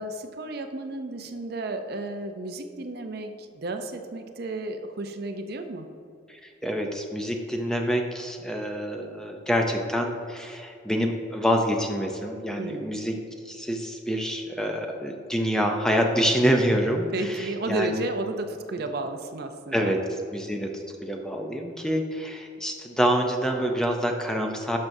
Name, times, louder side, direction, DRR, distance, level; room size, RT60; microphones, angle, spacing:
voice 1, 0.0-5.9 12.6-12.9 17.1-20.0, right 2 dB, 50° right, 6 dB, 0.5 m, -32 dB
voice 2, 6.3-13.2 13.4-18.0 19.7-20.0 20.3-24.8, equal, 5° left, 2 dB, 0.5 m, -26 dB
12.0 x 6.0 x 2.6 m, 2.5 s
head